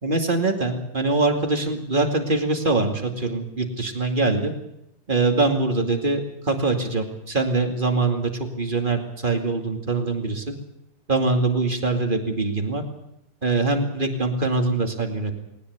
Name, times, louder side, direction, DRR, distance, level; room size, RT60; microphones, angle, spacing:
voice 1, 0.0-4.5 5.1-8.3 8.6-10.6 11.1-12.8 13.4-15.3, right 3 dB, 25° right, 4 dB, 2.5 m, -23 dB
20.0 x 19.0 x 8.2 m, 0.81 s
omnidirectional pair, 2.1 m